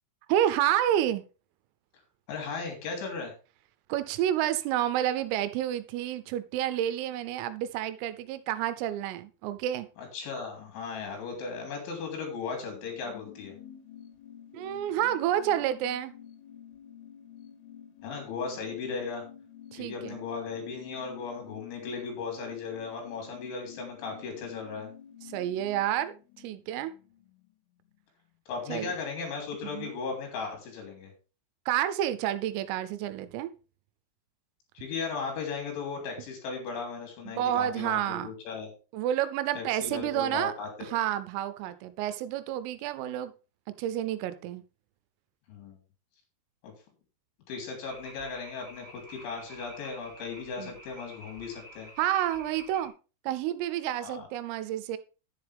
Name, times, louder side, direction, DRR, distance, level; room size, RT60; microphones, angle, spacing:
voice 1, 0.3-1.2 3.9-9.9 14.5-16.1 19.7-20.2 25.3-26.1 26.4-26.9 28.7-29.0 29.6-29.9 31.7-33.5 37.3-38.3 38.9-40.5 40.8-43.3 43.7-44.6 50.6-50.7 52.0-52.9 53.3-55.0, right 11 dB, 85° right, 12 dB, 3.4 m, -29 dB
voice 2, 2.3-3.3 10.0-13.6 18.0-19.2 19.7-24.9 28.5-31.1 34.8-38.7 39.6-40.9 45.5-45.8 46.6-46.7 47.5-51.9 54.0-54.3, left 5 dB, 65° left, 2 dB, 5.5 m, -37 dB
sound 1, 12.5-27.6 27.9-28.0, left 9 dB, 80° left, 3.7 m, -50 dB
The sound of frogs croaking in the evening at the lake, 47.8-52.9, right 1 dB, 10° right, 3.3 m, -50 dB
10.0 x 9.5 x 3.5 m, 0.33 s
omnidirectional pair, 5.9 m